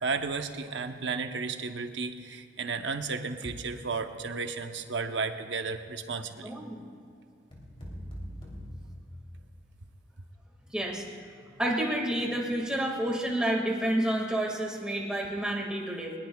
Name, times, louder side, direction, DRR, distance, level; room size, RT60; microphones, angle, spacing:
voice 1, 0.0-6.5, right 4 dB, 70° right, 6 dB, 0.9 m, -33 dB
voice 2, 6.4-6.8 10.7-11.0 11.6-16.1, right 1 dB, 5° right, -2 dB, 1.9 m, -29 dB
sound 1, 7.5-9.8, equal, 30° left, 3.1 m, -42 dB
21.5 x 21.5 x 2.3 m, 2.2 s
head